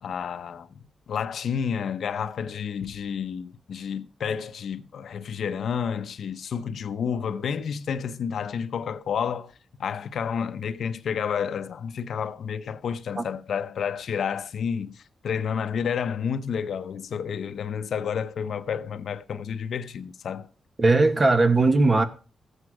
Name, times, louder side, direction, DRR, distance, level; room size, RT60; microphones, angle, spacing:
voice 1, 0.0-0.7 1.1-9.5 9.8-20.5, left 7 dB, 65° left, 0.7 m, -30 dB
voice 2, 20.8-22.0, right 3 dB, 25° right, 1.0 m, -19 dB
14.5 x 8.1 x 4.8 m
wide cardioid pair, 170°, 0 cm